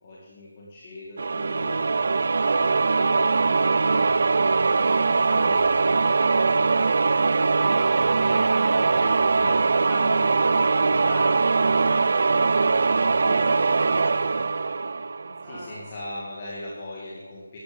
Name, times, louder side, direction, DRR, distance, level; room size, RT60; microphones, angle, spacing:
voice 1, 0.0-2.1 2.4-5.7 7.9-9.7 13.1-14.0 15.4-17.6, left 1 dB, 25° left, -5 dB, 2.1 m, -41 dB
sound 1, 1.2-15.8, right 4 dB, 50° right, 0.4 m, -21 dB
voice 2, 9.9-12.3 15.2-15.8, left 1 dB, 5° left, -10 dB, 3.8 m, -39 dB
12.0 x 11.0 x 5.4 m, 1.3 s
figure-of-eight pair, 175°, 0 cm